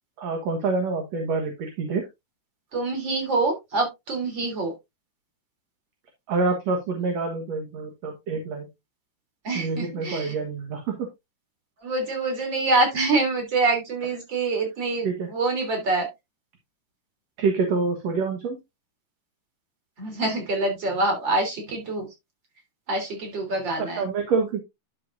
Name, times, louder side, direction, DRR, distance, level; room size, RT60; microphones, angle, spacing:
voice 1, 0.2-2.0 6.3-8.7 9.5-11.1 15.0-15.3 17.4-18.6 23.8-24.6, right 4 dB, 60° right, 3 dB, 2.4 m, -26 dB
voice 2, 2.7-4.7 9.4-10.3 11.8-16.1 20.0-22.1 22.9-24.0, right 2 dB, 35° right, 3 dB, 3.8 m, -25 dB
11.5 x 6.7 x 2.6 m, 0.21 s
omnidirectional pair, 3.6 m